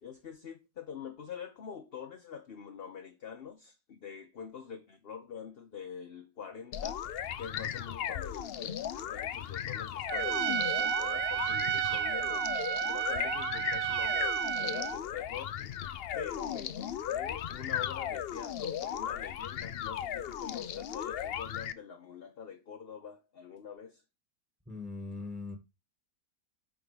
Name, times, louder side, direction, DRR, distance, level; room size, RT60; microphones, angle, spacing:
voice 1, 0.0-7.1 7.4-12.5 12.9-15.6 16.1-24.0, left 7 dB, 50° left, 0.9 m, -45 dB
sound 1, 6.7-21.7, left 10 dB, 65° left, 0.6 m, -36 dB
Trumpet, 10.1-15.0, right 10 dB, 90° right, 1.2 m, -32 dB
voice 2, 24.7-25.6, left 3 dB, 5° right, 1.4 m, -40 dB
8.7 x 3.8 x 4.9 m
omnidirectional pair, 1.6 m